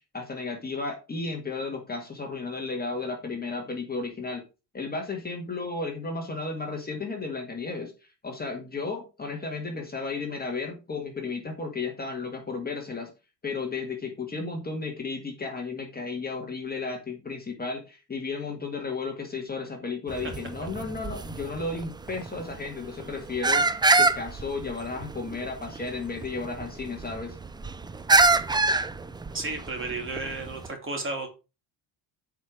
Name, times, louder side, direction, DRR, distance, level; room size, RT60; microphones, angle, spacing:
voice 1, 0.1-4.4 4.7-13.1 13.4-27.4, left 4 dB, 20° left, 2 dB, 1.9 m, -34 dB
sound 1, 20.1-30.7, right 3 dB, 10° right, 0.3 m, -27 dB
voice 2, 29.3-31.3, right 3 dB, 25° right, 3 dB, 3.0 m, -33 dB
9.1 x 4.7 x 4.9 m, 0.29 s
cardioid pair, 135°, 45 cm